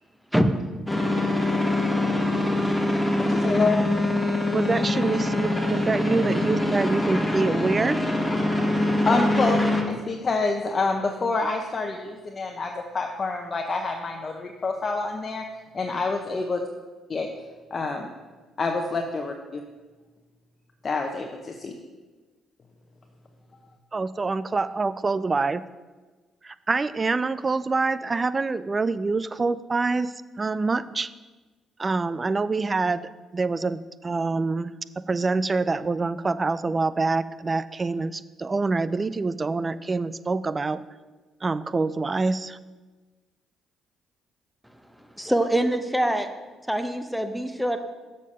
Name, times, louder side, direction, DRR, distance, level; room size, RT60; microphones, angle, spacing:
sound 1, 0.9-9.8, left 1 dB, 15° left, 1.7 m, -24 dB
voice 1, 3.2-3.8 9.1-15.5 15.7-16.6 17.1-17.3 17.7-18.1 18.6-19.6 20.8-21.7, left 3 dB, 40° left, 3 dB, 0.8 m, -27 dB
voice 2, 4.5-8.0 23.9-25.6 26.4-31.1 31.8-33.0 33.3-34.7 35.1-40.8 41.4-42.6, right 3 dB, 30° right, 16 dB, 0.4 m, -26 dB
voice 3, 45.0-46.3 46.7-47.8, right 1 dB, ahead, 7 dB, 0.9 m, -24 dB
7.2 x 6.5 x 5.5 m, 1.3 s
hypercardioid pair, 55°, 0 cm